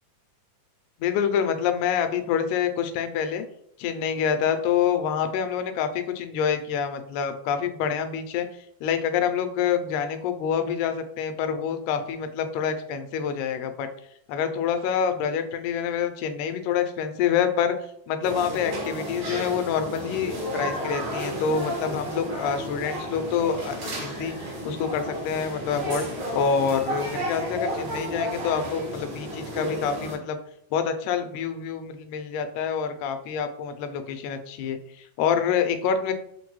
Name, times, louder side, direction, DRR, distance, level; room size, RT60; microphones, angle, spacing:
voice 1, 1.0-3.4 3.8-8.5 8.8-13.9 14.3-17.7 18.1-26.0 26.3-30.4 30.7-36.1, left 7 dB, 80° left, 8 dB, 2.0 m, -27 dB
sound 1, 18.2-30.1, equal, 60° right, 1.2 m, -32 dB
5.8 x 2.2 x 3.0 m, 0.71 s
omnidirectional pair, 3.7 m